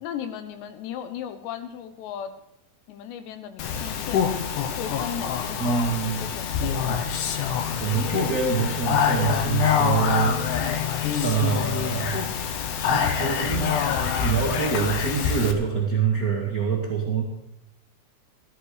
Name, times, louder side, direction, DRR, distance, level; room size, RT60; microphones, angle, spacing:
voice 1, 0.0-2.3 2.9-4.5 4.8-5.6 5.9-6.8, left 8 dB, 85° left, 10 dB, 3.3 m, -36 dB
Speech, 3.6-15.5, left 7 dB, 70° left, 2.0 m, -25 dB
voice 2, 5.6-6.2 6.9-7.0 7.8-10.4 11.2-12.3 12.8-13.7 14.2-17.2, right 6 dB, 45° right, -1 dB, 1.2 m, -25 dB
15.0 x 13.0 x 5.0 m, 0.82 s
omnidirectional pair, 4.8 m